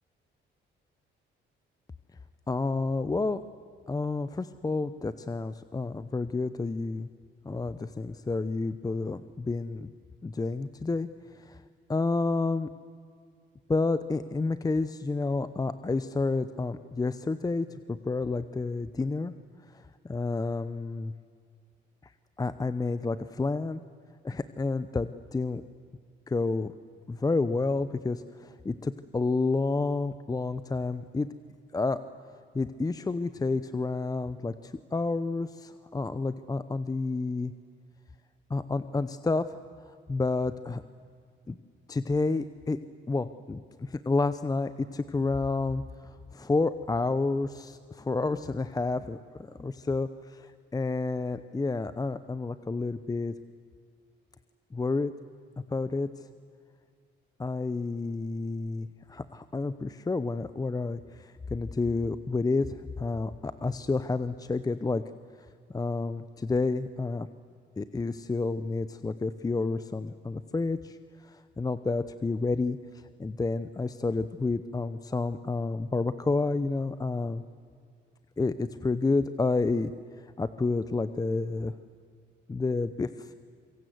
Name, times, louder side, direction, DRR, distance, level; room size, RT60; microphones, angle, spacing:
voice 1, 2.5-3.4 3.9-7.1 7.4-9.9 10.2-11.1 11.3-11.6 11.9-12.7 13.7-19.3 19.7-21.1 22.0-22.1 22.4-23.8 24.2-25.6 26.3-26.7 27.1-31.3 31.7-32.0 32.5-37.5 38.5-39.6 40.1-40.8 41.5-41.6 41.9-42.8 43.1-53.3 54.7-55.1 55.7-56.3 57.4-65.0 65.7-67.3 67.8-71.0 71.2-72.8 73.2-77.4 78.4-79.9 80.4-81.7 82.5-83.3, left 3 dB, 20° left, 13 dB, 0.7 m, -30 dB
26.5 x 23.5 x 7.9 m, 2.1 s
cardioid pair, 90°, 20 cm